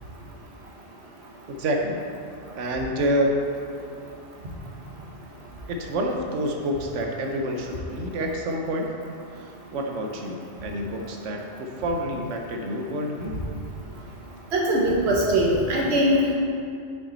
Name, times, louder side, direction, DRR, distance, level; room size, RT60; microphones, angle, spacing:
voice 1, 1.5-2.0 2.5-3.4 5.7-8.9 9.3-13.4, equal, 85° right, 2 dB, 1.1 m, -28 dB
voice 2, 14.5-16.3, equal, 65° right, -2 dB, 1.3 m, -21 dB
6.1 x 5.7 x 3.9 m, 2.4 s
omnidirectional pair, 1.2 m